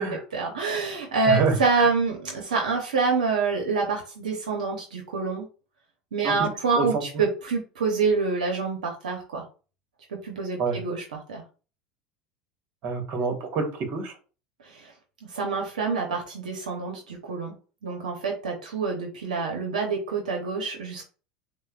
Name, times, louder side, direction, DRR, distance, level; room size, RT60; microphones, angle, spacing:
voice 1, 0.3-5.5 6.1-9.4 10.1-11.4 14.6-14.9 15.3-17.5 17.8-21.0, right 4 dB, 90° right, 2 dB, 0.8 m, -27 dB
voice 2, 1.3-1.9 6.2-6.5 6.7-7.0 10.6-10.8 12.8-14.2, right 4 dB, 55° right, 4 dB, 1.3 m, -27 dB
6.2 x 2.1 x 2.4 m, 0.36 s
hypercardioid pair, 85°, 4 cm